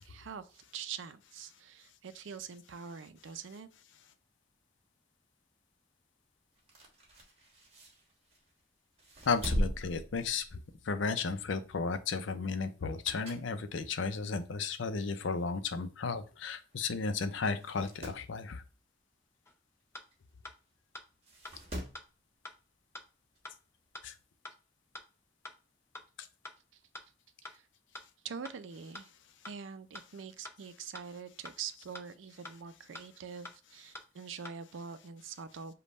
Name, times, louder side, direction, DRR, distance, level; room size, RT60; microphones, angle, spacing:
voice 1, 0.0-3.7 26.7-26.8 27.4-27.6 28.2-29.1 29.5-35.7, right 6 dB, 85° right, 0.4 m, -44 dB
sound 1, 6.6-8.5 9.0-10.9 11.2-11.4 12.7-13.6 14.0-14.1 15.0-15.1 15.3-15.4 15.6-15.7 16.6-16.8 17.1-17.2 17.6-18.3 20.1-20.2 21.2-22.1 23.4-23.5, equal, 30° right, 1.2 m, -39 dB
voice 2, 9.3-10.6 10.9-18.6 24.0-24.1, left 4 dB, 80° left, 0.5 m, -34 dB
sound 2, 19.5-19.6 19.9-20.1 20.4-20.6 20.9-21.1 21.4-21.6 21.9-22.1 22.4-22.6 22.9-23.1 23.4-23.6 23.9-24.1 24.4-24.6 24.9-25.1 25.4-25.6 25.9-26.1 26.4-26.6 26.9-27.1 27.4-27.6 27.9-28.1 28.4-28.6 28.9-29.1 29.4-29.6 29.9-30.1 30.4-30.6 30.9-31.1 31.4-31.6 31.9-32.1 32.4-32.6 32.9-33.1 33.4-33.6 33.9-34.1 34.4-34.6, left 1 dB, 15° left, 0.4 m, -46 dB
5.3 x 2.3 x 4.0 m
head